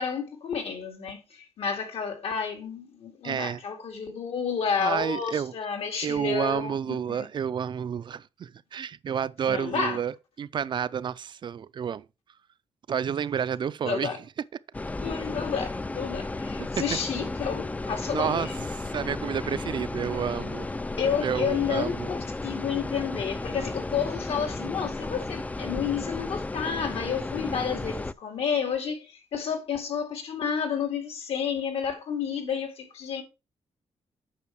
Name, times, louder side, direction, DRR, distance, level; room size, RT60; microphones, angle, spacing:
voice 1, 0.0-7.3 9.5-10.0 13.8-14.2 15.0-18.7 21.0-33.2, left 7 dB, 70° left, 2.4 m, -31 dB
voice 2, 3.2-3.6 4.8-5.5 6.0-12.0 12.9-14.1 16.6-16.7 18.1-18.5 18.8-20.7 21.2-22.1, right 8 dB, 45° right, 0.4 m, -30 dB
sound 1, 14.7-28.1, left 2 dB, 15° left, 0.4 m, -34 dB
8.5 x 5.7 x 4.6 m
cardioid pair, 130°, 11 cm